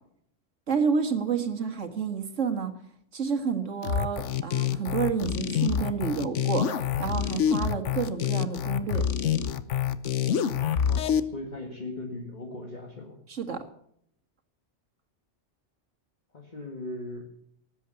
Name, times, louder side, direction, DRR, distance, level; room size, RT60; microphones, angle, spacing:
voice 1, 0.7-2.7 3.1-9.0 13.3-13.6, right 6 dB, 70° right, 6 dB, 2.1 m, -29 dB
sound 1, 3.8-11.2, left 8 dB, 70° left, 1.2 m, -27 dB
voice 2, 10.6-13.2 16.3-17.3, left 2 dB, 35° left, 1 dB, 2.0 m, -39 dB
19.0 x 8.6 x 6.9 m, 0.70 s
omnidirectional pair, 1.3 m